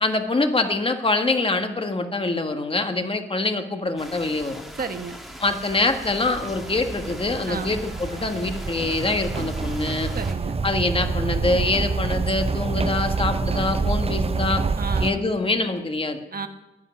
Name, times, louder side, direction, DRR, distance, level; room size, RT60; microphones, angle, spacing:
voice 1, 0.0-4.6 5.4-10.1 10.6-14.6 15.0-16.2, left 2 dB, 25° left, 6 dB, 1.4 m, -24 dB
sound 1, 4.0-10.3, equal, ahead, 1.6 m, -41 dB
voice 2, 4.8-5.2 7.5-7.8 10.1-10.6 14.8-15.3 16.3-16.5, right 5 dB, 45° right, 8 dB, 1.3 m, -32 dB
sound 2, 5.5-15.1, right 4 dB, 30° right, 0.6 m, -27 dB
11.0 x 11.0 x 9.7 m, 1.0 s
wide cardioid pair, 115°, 21 cm